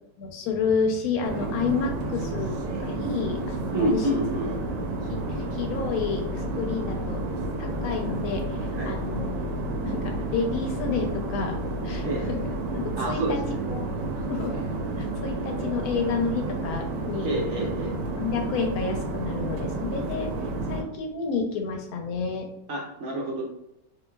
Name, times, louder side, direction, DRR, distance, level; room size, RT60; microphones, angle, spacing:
voice 1, 0.2-2.5 2.8-4.1 5.1-7.2 7.6-9.3 9.8-11.6 11.8-12.4 12.7-13.4 13.7-13.9 14.3-14.6 15.0-17.3 17.6-17.7 18.1-20.3 20.7-22.5, left 5 dB, 65° left, 3 dB, 1.0 m, -30 dB
sound 1, 1.2-20.8, right 2 dB, 80° right, 1.2 m, -31 dB
voice 2, 3.7-4.5 8.7-9.0 12.0-12.3 13.0-13.6 17.2-17.9 22.7-23.4, right 1 dB, 65° right, -2 dB, 0.9 m, -28 dB
3.4 x 3.0 x 2.2 m, 0.82 s
omnidirectional pair, 1.9 m